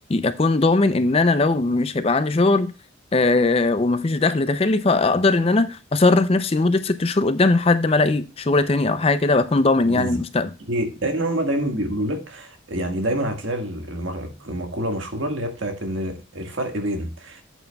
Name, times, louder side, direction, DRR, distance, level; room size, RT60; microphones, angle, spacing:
voice 1, 0.1-2.7 3.1-10.5, left 3 dB, 30° left, 0.4 m, -19 dB
voice 2, 9.8-10.2 10.7-17.4, right 1 dB, 65° right, 1.6 m, -27 dB
13.0 x 8.2 x 2.3 m
head